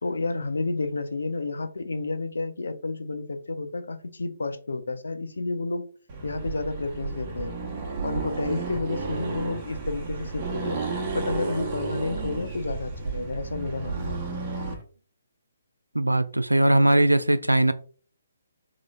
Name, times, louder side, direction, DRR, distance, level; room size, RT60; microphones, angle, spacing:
voice 1, 0.0-5.9 6.2-7.6 8.0-14.2, left 3 dB, 70° left, 0.5 m, -31 dB
Accelerating revving vroom, 6.1-14.8, right 4 dB, 30° right, 0.9 m, -32 dB
voice 2, 15.9-17.7, right 1 dB, 90° right, 0.3 m, -20 dB
3.9 x 3.1 x 2.3 m
figure-of-eight pair, 135°, 0 cm